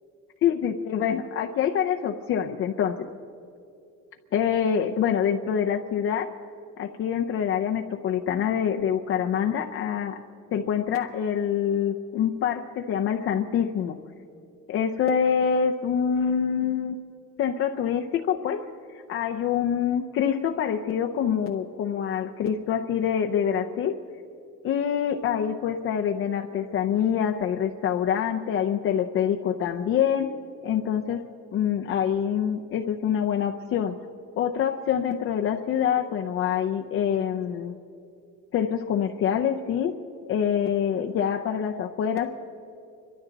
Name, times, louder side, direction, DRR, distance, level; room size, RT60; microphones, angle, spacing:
voice 1, 0.4-3.0 4.3-6.3 6.8-10.2 10.5-14.0 14.7-17.0 17.4-24.0 24.6-30.4 30.6-33.9 34.4-37.8 38.5-40.0 40.3-42.3, left 8 dB, 40° left, 3 dB, 0.6 m, -25 dB
26.5 x 12.5 x 4.0 m, 2.6 s
cardioid pair, 170°, 32 cm